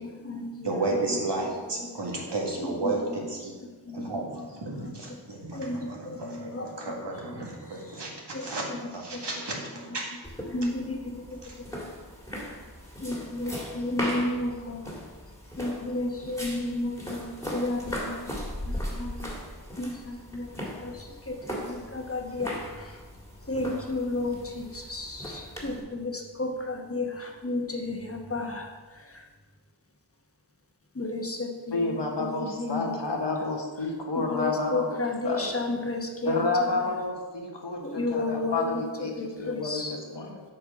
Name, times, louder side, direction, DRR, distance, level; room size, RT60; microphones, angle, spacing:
voice 1, 0.0-1.2 1.7-1.9 2.6-3.3 3.8-4.5 4.8-5.2 5.5-7.3 7.7-7.9 8.3-9.2 9.7-9.8 10.4-11.8 13.0-15.1 15.6-19.3 19.8-23.0 23.4-29.3 30.9-33.2 34.2-36.8 37.8-40.0, left 2 dB, 35° left, 3 dB, 1.1 m, -33 dB
voice 2, 0.6-3.5 3.9-8.1 8.4-9.5 9.8-10.1 10.6-10.7 11.4-11.6, right 2 dB, 80° right, -2 dB, 1.8 m, -33 dB
sound 1, 10.2-25.8, equal, 5° left, 1.8 m, -38 dB
voice 3, 31.7-35.0 35.2-35.5 36.2-39.1 39.4-40.4, left 3 dB, 85° left, 1 dB, 1.4 m, -30 dB
8.3 x 4.5 x 6.0 m, 1.4 s
wide cardioid pair, 60°, 41 cm